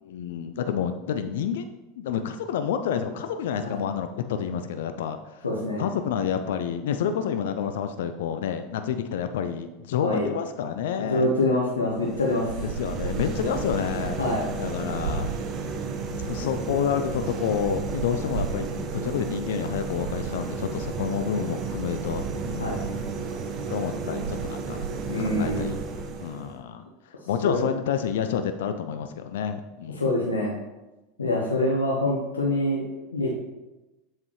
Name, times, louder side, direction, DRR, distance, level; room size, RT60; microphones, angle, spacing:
voice 1, 0.0-5.5 5.8-11.3 12.6-14.2 14.6-15.3 16.2-23.1 23.7-24.8 25.2-25.8 26.2-26.8 27.3-30.1 31.2-31.4, left 8 dB, 70° left, 8 dB, 0.4 m, -29 dB
voice 2, 5.4-5.9 10.0-10.3 11.0-12.5 14.2-14.4 22.6-22.8 25.1-25.8 27.4-27.6 30.0-30.5 31.2-33.3, left 1 dB, 85° left, -3 dB, 1.1 m, -25 dB
sound 1, 11.9-26.6, right 4 dB, 45° right, 1.1 m, -32 dB
7.5 x 7.2 x 3.2 m, 1.1 s
hypercardioid pair, 85°, 0 cm